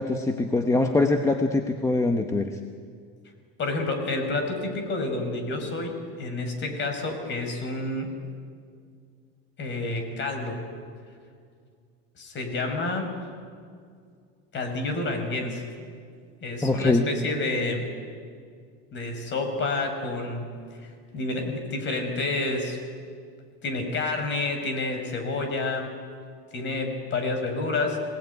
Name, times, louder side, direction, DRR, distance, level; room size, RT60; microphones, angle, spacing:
voice 1, 0.0-2.6 16.6-17.1, left 2 dB, 10° left, 5 dB, 1.0 m, -23 dB
voice 2, 3.6-8.2 9.6-10.6 12.2-13.1 14.5-15.7 16.4-17.9 18.9-20.5 20.8-22.8 23.6-26.0 26.5-28.0, left 2 dB, 35° left, 5 dB, 5.1 m, -29 dB
26.5 x 19.0 x 9.5 m, 2.2 s
cardioid pair, 145°, 32 cm